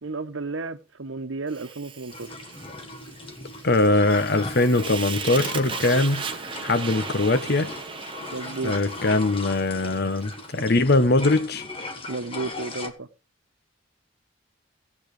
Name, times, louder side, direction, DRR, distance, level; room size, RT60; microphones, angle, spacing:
voice 1, 0.0-2.3 8.3-8.7 12.1-13.1, right 3 dB, 80° right, 1.0 m, -32 dB
Fire, 1.5-10.7, right 5 dB, 25° right, 1.2 m, -37 dB
sound 1, 2.1-12.9, left 2 dB, 30° left, 1.5 m, -38 dB
voice 2, 3.6-6.2 6.6-7.7 8.6-11.6, left 2 dB, 55° left, 1.0 m, -21 dB
17.0 x 8.6 x 3.3 m
head